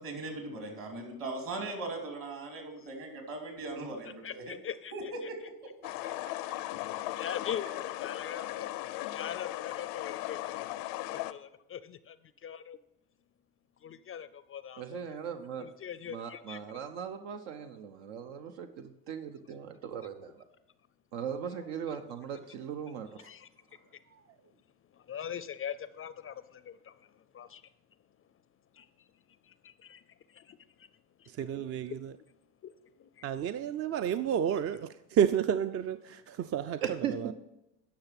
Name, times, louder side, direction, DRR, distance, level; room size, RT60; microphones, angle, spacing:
voice 1, 0.0-4.6 4.9-5.5, right 2 dB, 55° right, 3 dB, 3.0 m, -39 dB
voice 2, 4.2-5.3 7.2-8.7 9.1-12.8 13.8-15.2 15.6-16.6 21.5-22.0 23.2-24.0 24.4-24.5 24.9-27.6 28.7-30.9 31.2-31.3 31.8-32.0 32.6-33.3 33.9-34.0 36.3-36.4, left 9 dB, 35° left, 15 dB, 0.4 m, -43 dB
sound 1, 5.8-11.3, left 16 dB, 80° left, 0.6 m, -37 dB
voice 3, 14.8-15.6 16.1-20.3 21.1-23.1 36.8-37.3, right 8 dB, 80° right, 6 dB, 0.9 m, -38 dB
voice 4, 31.4-32.0 33.2-36.8 37.1-37.3, right 8 dB, 40° right, 12 dB, 0.4 m, -30 dB
10.5 x 5.9 x 5.8 m, 0.93 s
supercardioid pair, 85°, 41 cm